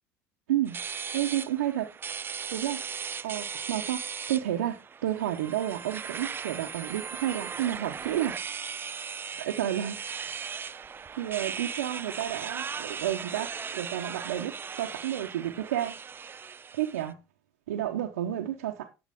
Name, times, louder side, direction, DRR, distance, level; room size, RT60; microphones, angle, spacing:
sound 1, 0.7-17.1, right 6 dB, 25° right, 0.4 m, -38 dB
voice 1, 1.1-1.9 2.5-2.8 3.2-4.0 4.3-8.4 9.4-10.0 11.2-16.0 16.7-17.2 17.7-18.8, right 12 dB, 85° right, 0.9 m, -31 dB
10.5 x 7.2 x 3.6 m
hypercardioid pair, 70°, 8 cm